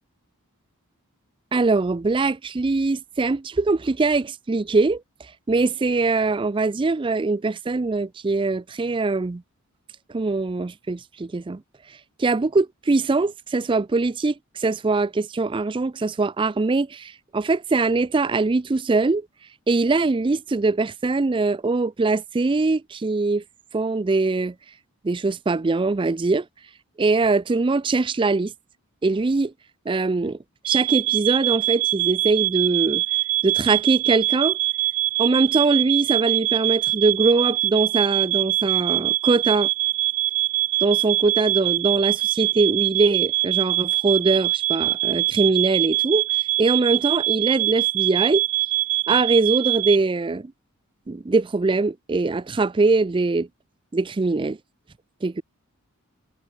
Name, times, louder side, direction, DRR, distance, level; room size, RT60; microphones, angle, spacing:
voice 1, 1.5-5.0 5.5-9.4 10.1-11.6 12.2-19.3 19.7-23.4 23.7-24.5 25.0-26.5 27.0-28.5 29.0-29.5 29.9-30.4 30.7-33.0 33.4-34.6 35.2-39.7 40.8-48.4 49.1-50.5 51.1-53.5 53.9-54.6 55.2-55.4, right 3 dB, 20° right, 0.4 m, -22 dB
sound 1, 30.6-50.0, right 17 dB, 80° right, 1.4 m, -23 dB
head